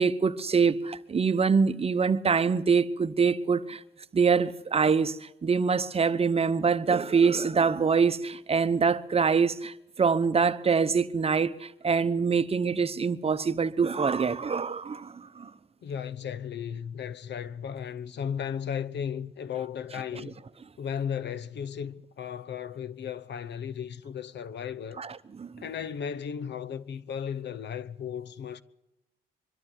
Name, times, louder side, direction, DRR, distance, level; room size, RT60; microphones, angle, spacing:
voice 1, 0.0-3.8 4.1-15.5 25.0-25.6, right 5 dB, 30° right, 0.9 m, -25 dB
voice 2, 15.8-20.4 20.8-25.0 25.6-28.6, left 8 dB, 60° left, 1.0 m, -35 dB
23.5 x 12.5 x 9.2 m
cardioid pair, 90°, 20 cm